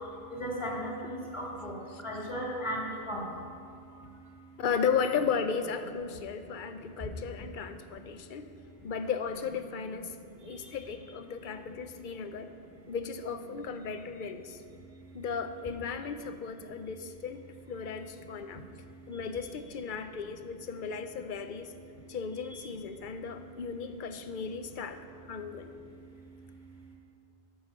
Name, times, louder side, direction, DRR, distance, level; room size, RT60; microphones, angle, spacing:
voice 1, 0.3-1.7 2.0-2.8 3.1-3.2 22.5-22.6, equal, 30° left, -3 dB, 2.0 m, -35 dB
voice 2, 4.6-8.5 8.8-10.2 10.4-12.5 12.9-14.6 15.1-18.6 19.1-21.8 22.1-25.7, left 6 dB, 60° left, 9 dB, 0.7 m, -35 dB
9.6 x 7.5 x 5.3 m, 2.4 s
omnidirectional pair, 1.1 m